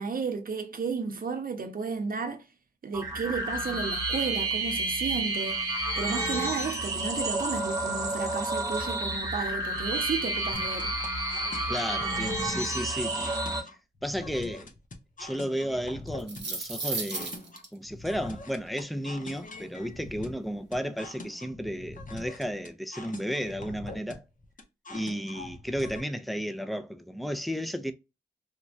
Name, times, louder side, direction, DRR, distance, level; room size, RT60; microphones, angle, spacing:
voice 1, 0.0-2.5 2.8-5.7 6.0-11.0, right 5 dB, 55° right, 0.6 m, -33 dB
sound 1, 2.9-13.6, right 2 dB, 20° right, 1.0 m, -30 dB
sound 2, 10.5-26.0, left 2 dB, 45° left, 0.7 m, -44 dB
voice 2, 11.7-13.6 14.0-14.7 15.2-17.4 17.7-24.3 24.9-27.9, equal, ahead, 0.4 m, -33 dB
sound 3, 16.1-17.6, right 3 dB, 75° right, 0.9 m, -34 dB
3.1 x 2.2 x 2.5 m
wide cardioid pair, 70°, 18 cm